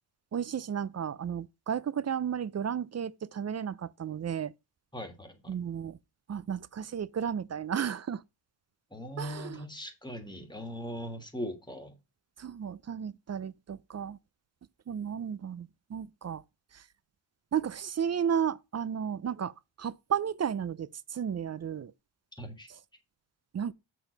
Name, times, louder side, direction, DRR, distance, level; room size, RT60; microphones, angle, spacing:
voice 1, 0.3-4.5 5.5-6.0 6.3-8.2 9.2-9.6 12.4-14.2 14.9-16.4 16.7-16.8 17.5-19.5 19.8-21.9 22.7-22.8 23.5-23.7, right 8 dB, 35° right, 0.4 m, -33 dB
voice 2, 4.9-5.6 8.9-11.9 22.4-22.7, equal, 10° left, 1.5 m, -40 dB
7.7 x 4.7 x 5.1 m
wide cardioid pair, 120°, 50 cm